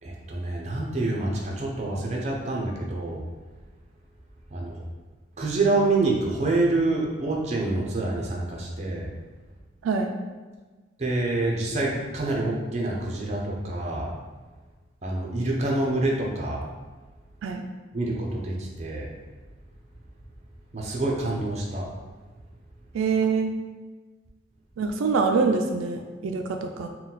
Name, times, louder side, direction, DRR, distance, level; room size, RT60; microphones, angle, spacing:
voice 1, 0.0-3.2 4.5-4.8 5.4-9.1 11.0-14.1 15.0-16.7 17.9-19.1 20.7-21.9, right 2 dB, 35° right, -1 dB, 0.6 m, -27 dB
voice 2, 22.9-23.5 24.8-26.9, right 4 dB, 90° right, 5 dB, 0.3 m, -25 dB
4.0 x 2.2 x 3.9 m, 1.3 s
head